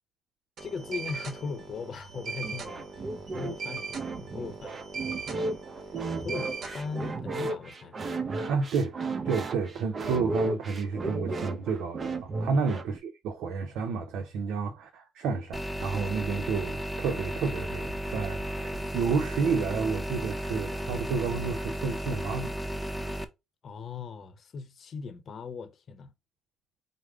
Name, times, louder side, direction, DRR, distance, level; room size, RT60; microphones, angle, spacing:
voice 1, 0.6-3.1 3.3-4.8 5.3-5.5 6.2-8.0 12.5-12.7 23.6-26.1, left 5 dB, 55° left, 0.7 m, -39 dB
sound 1, 0.6-7.1, right 4 dB, 60° right, 1.1 m, -40 dB
sound 2, 2.4-13.0, right 3 dB, 40° right, 0.7 m, -34 dB
voice 2, 8.5-9.0 9.2-22.5, right 5 dB, 85° right, 0.6 m, -30 dB
sound 3, 15.5-23.2, equal, ahead, 0.7 m, -34 dB
5.1 x 2.1 x 4.7 m
cardioid pair, 90°, 0 cm